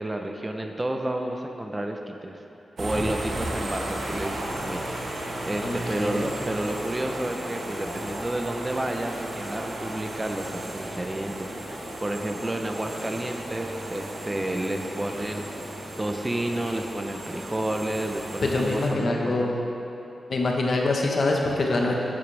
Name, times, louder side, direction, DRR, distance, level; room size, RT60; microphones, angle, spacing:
voice 1, 0.0-2.4 2.8-15.5 16.0-19.5, right 1 dB, 25° right, 4 dB, 0.9 m, -31 dB
sound 1, 2.8-18.9, right 1 dB, 75° right, 1.6 m, -35 dB
voice 2, 5.6-6.3 18.4-19.6 20.3-21.9, left 2 dB, 65° left, 0 dB, 1.3 m, -25 dB
11.0 x 8.7 x 3.5 m, 2.9 s
cardioid pair, 50°, 0 cm